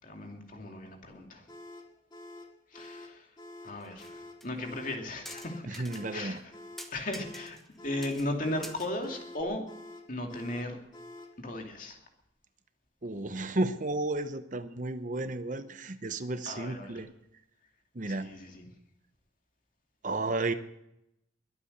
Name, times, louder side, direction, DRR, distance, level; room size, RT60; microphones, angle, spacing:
voice 1, 0.0-1.4 2.7-3.3 3.6-5.8 6.1-6.4 6.9-7.6 7.8-9.6 10.1-10.8 11.4-12.0 16.5-17.0 18.1-18.7, left 1 dB, 45° left, 3 dB, 2.6 m, -36 dB
sound 1, 1.5-11.4, left 2 dB, 25° left, 2.3 m, -48 dB
sound 2, 3.8-4.1 4.4-4.5 5.3-6.0 6.4-6.5 6.8-7.8 8.0-8.3 8.6-9.4, equal, ahead, 1.2 m, -46 dB
voice 2, 5.6-6.4 13.0-17.1 17.9-18.3 20.0-20.5, right 2 dB, 40° right, 10 dB, 0.8 m, -33 dB
22.5 x 8.6 x 6.6 m, 0.81 s
head